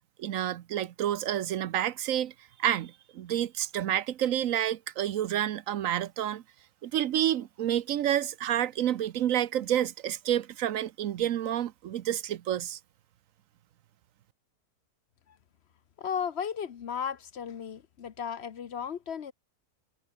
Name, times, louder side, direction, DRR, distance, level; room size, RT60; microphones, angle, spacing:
voice 1, 0.2-2.3 2.6-6.4 6.8-12.8, right 11 dB, 65° right, 1.0 m, -29 dB
voice 2, 16.0-19.3, left 7 dB, 50° left, 1.0 m, -35 dB
omnidirectional pair, 1.6 m